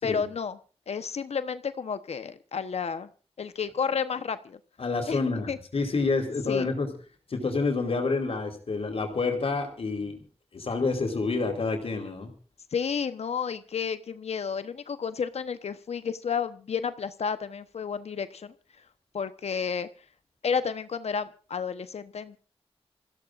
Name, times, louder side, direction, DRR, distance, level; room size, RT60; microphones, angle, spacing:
voice 1, 0.0-0.6 0.9-3.1 3.4-4.6 5.1-5.2 5.5-5.6 6.5-6.7 12.7-18.5 19.1-19.9 20.4-22.4, left 6 dB, 80° left, 11 dB, 1.0 m, -31 dB
voice 2, 4.8-6.9 7.3-10.2 10.5-12.3, left 3 dB, 65° left, 4 dB, 4.2 m, -28 dB
28.0 x 16.0 x 2.6 m, 0.37 s
wide cardioid pair, 85°, 11 cm